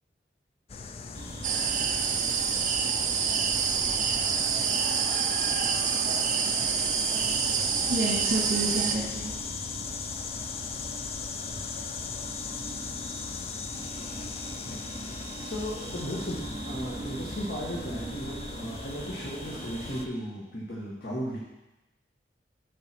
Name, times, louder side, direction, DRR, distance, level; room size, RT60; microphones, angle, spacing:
sound 1, 0.7-20.1, left 5 dB, 35° left, 0.4 m, -39 dB
sound 2, 1.1-20.0, right 2 dB, 25° right, 1.1 m, -42 dB
sound 3, 1.4-9.0, right 6 dB, 45° right, 0.5 m, -27 dB
voice 1, 7.9-9.3, right 1 dB, 65° right, -8 dB, 2.3 m, -29 dB
voice 2, 14.6-21.4, equal, 65° left, -5 dB, 1.4 m, -36 dB
6.9 x 4.9 x 6.0 m, 1.0 s
head